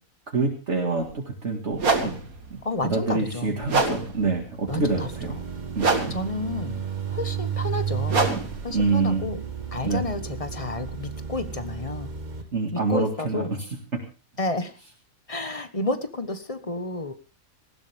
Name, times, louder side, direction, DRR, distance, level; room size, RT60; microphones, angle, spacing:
voice 1, 0.3-2.1 2.5-5.4 5.8-5.9 8.7-9.3 9.8-10.0 12.5-13.7, right 3 dB, 55° right, 1 dB, 2.3 m, -26 dB
sound 1, 1.0-1.1 1.7-10.6, right 3 dB, 85° right, 2.7 m, -29 dB
voice 2, 2.6-3.6 4.7-5.1 6.1-6.8 7.1-8.3 8.6-9.4 9.7-12.1 12.7-13.5 14.4-14.7 15.3-17.1, left 2 dB, 25° left, 10 dB, 1.3 m, -31 dB
sound 2, 4.7-12.4, right 7 dB, 35° right, 1.3 m, -33 dB
19.0 x 15.5 x 3.5 m, 0.34 s
omnidirectional pair, 1.5 m